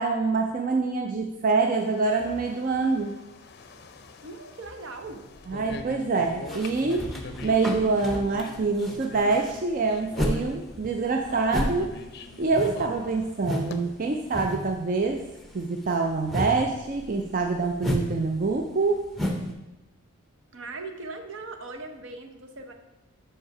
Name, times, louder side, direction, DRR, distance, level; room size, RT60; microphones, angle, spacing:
voice 1, 0.0-3.1 5.5-7.1 7.4-11.9 12.4-15.2 15.5-19.0, right 3 dB, 40° right, 3 dB, 0.4 m, -25 dB
sound 1, 1.8-13.9, left 3 dB, 50° left, 0.5 m, -44 dB
voice 2, 4.2-5.3 20.5-22.7, right 3 dB, 65° right, 5 dB, 0.8 m, -39 dB
sound 2, 6.2-10.5 10.7-13.8 14.0-14.7 15.0-19.5, equal, ahead, 0.6 m, -32 dB
5.3 x 4.8 x 5.9 m, 1.0 s
head